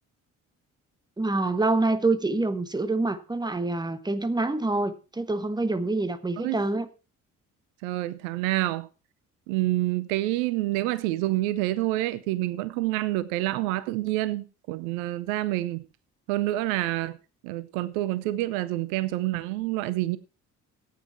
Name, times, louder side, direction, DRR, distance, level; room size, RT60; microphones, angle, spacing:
voice 1, 1.2-6.9, right 2 dB, 10° right, 1.3 m, -26 dB
voice 2, 7.8-8.9 9.5-15.8 16.3-17.2 17.4-20.2, right 17 dB, 70° right, 0.7 m, -27 dB
14.5 x 9.3 x 4.2 m
figure-of-eight pair, 45°, 43 cm